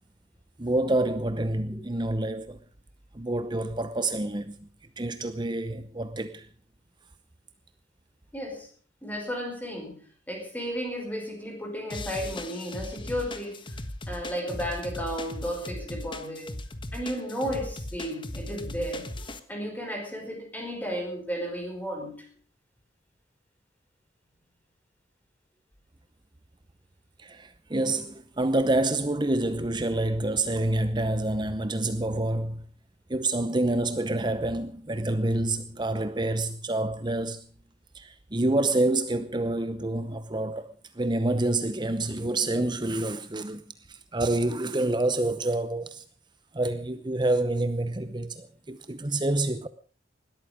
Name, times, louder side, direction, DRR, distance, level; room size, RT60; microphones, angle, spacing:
voice 1, 0.6-2.6 3.1-4.7 5.0-6.5 27.2-32.7 33.1-37.5 37.9-40.7 40.9-43.6 43.9-46.0 46.5-49.7, right 2 dB, 25° right, 0.8 m, -27 dB
voice 2, 8.3-8.7 9.0-13.8 14.1-16.5 16.9-19.1 19.5-22.3 44.2-44.3, equal, 10° left, 5.1 m, -34 dB
sound 1, 11.9-19.4, left 1 dB, 25° left, 1.4 m, -38 dB
20.0 x 13.5 x 5.1 m
head